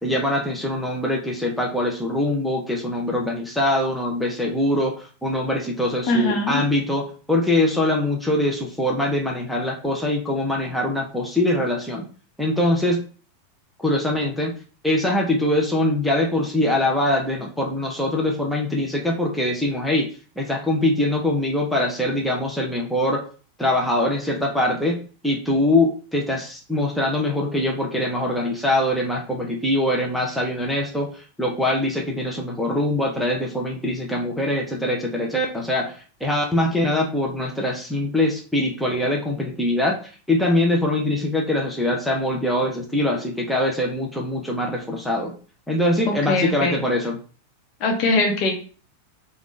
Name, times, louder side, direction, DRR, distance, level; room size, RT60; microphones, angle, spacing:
voice 1, 0.0-12.1 12.4-13.0 13.8-14.5 14.8-20.1 20.4-23.2 23.6-25.0 25.2-40.0 40.3-45.3 45.7-47.2, left 1 dB, ahead, -1 dB, 0.9 m, -23 dB
voice 2, 6.1-6.6 46.1-46.8 47.8-48.5, left 2 dB, 40° left, 2 dB, 1.1 m, -21 dB
5.1 x 2.5 x 3.3 m, 0.39 s
figure-of-eight pair, 90°, 0 cm